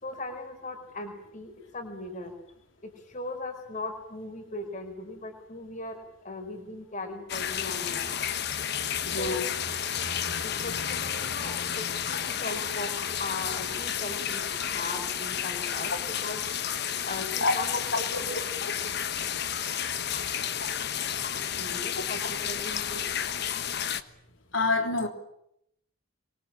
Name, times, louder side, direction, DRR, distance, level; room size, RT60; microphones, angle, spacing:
voice 1, 0.0-2.3 2.8-8.1 9.2-9.4 10.4-12.9 13.2-15.9 16.2-16.4 17.0-17.8 18.3-18.4 21.6-23.2, left 2 dB, 35° left, 6 dB, 5.0 m, -38 dB
sound 1, 7.3-24.0, left 8 dB, 50° left, 1.2 m, -31 dB
voice 2, 9.1-9.5 10.0-10.2 17.4-17.8 24.5-25.1, left 3 dB, 65° left, 5 dB, 3.5 m, -27 dB
26.5 x 23.5 x 8.9 m, 0.79 s
head